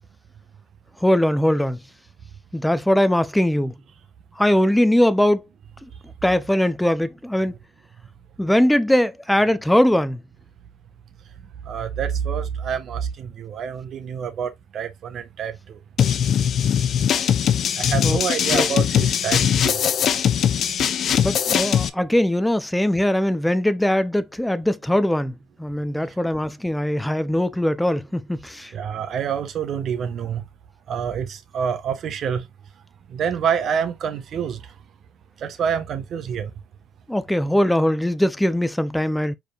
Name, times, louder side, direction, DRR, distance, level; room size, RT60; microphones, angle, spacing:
voice 1, 1.0-1.8 2.5-3.7 4.4-5.4 6.2-7.5 8.4-10.2 18.0-18.2 18.5-18.7 21.2-25.3 25.6-28.7 37.1-39.4, left 1 dB, 5° left, 0.5 m, -20 dB
voice 2, 11.6-15.8 17.8-19.8 28.7-30.4 30.9-32.5 33.1-34.7 35.4-36.5, right 7 dB, 55° right, 1.3 m, -27 dB
sound 1, 16.0-21.9, left 9 dB, 50° left, 0.6 m, -20 dB
4.7 x 4.6 x 2.4 m
supercardioid pair, 90°, 0 cm